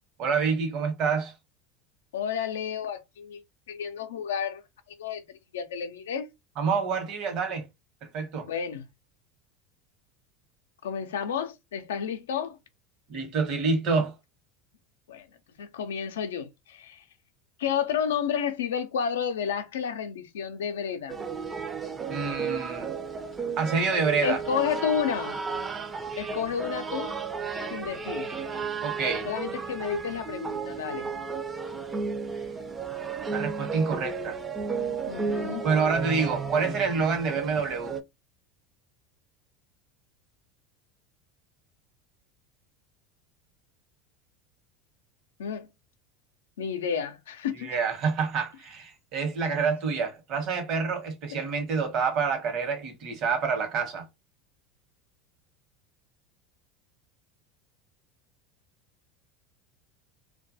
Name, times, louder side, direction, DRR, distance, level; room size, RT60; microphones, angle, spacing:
voice 1, 0.2-1.3 6.6-7.6 8.0-8.5 13.1-14.1 22.1-22.9 23.6-24.4 28.8-29.3 33.3-34.4 35.6-37.9 47.6-54.0, right 5 dB, 55° right, 0.9 m, -27 dB
voice 2, 2.1-3.4 3.7-4.6 5.0-5.2 5.5-6.3 8.4-8.8 10.8-12.6 15.1-15.3 15.6-17.0 17.6-21.2 24.2-25.4 26.2-27.2 27.7-28.3 29.2-31.1 35.1-35.6 45.4-45.7 46.6-47.7 51.3-51.4, left 7 dB, 85° left, 0.4 m, -31 dB
sound 1, 21.1-38.0, right 5 dB, 20° right, 0.4 m, -33 dB
2.2 x 2.2 x 2.6 m
hypercardioid pair, 95°, 0 cm